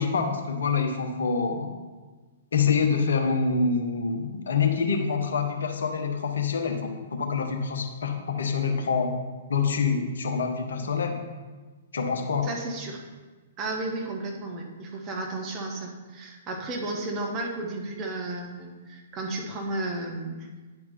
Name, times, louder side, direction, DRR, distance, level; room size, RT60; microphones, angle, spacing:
voice 1, 0.0-1.7 2.5-9.1 9.5-11.2 11.9-12.5, left 5 dB, 60° left, 4 dB, 0.9 m, -26 dB
voice 2, 12.4-13.0 13.6-20.5, right 2 dB, 25° right, 0 dB, 1.1 m, -33 dB
9.8 x 4.3 x 4.2 m, 1.3 s
figure-of-eight pair, 115°, 0 cm